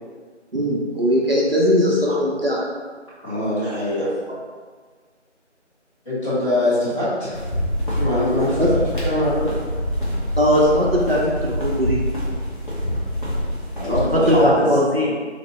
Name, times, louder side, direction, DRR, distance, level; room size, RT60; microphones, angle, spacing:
voice 1, 0.5-2.6 8.6-8.7 10.4-12.0 13.8-15.2, equal, 55° right, -4 dB, 0.5 m, -19 dB
voice 2, 3.2-4.1 6.0-7.4 7.9-8.6 8.9-9.5 13.8-14.5, left 1 dB, 25° left, -15 dB, 1.4 m, -23 dB
sound 1, 7.3-14.4, equal, 45° left, 0.9 m, -25 dB
3.4 x 2.1 x 3.1 m, 1.5 s
figure-of-eight pair, 165°, 36 cm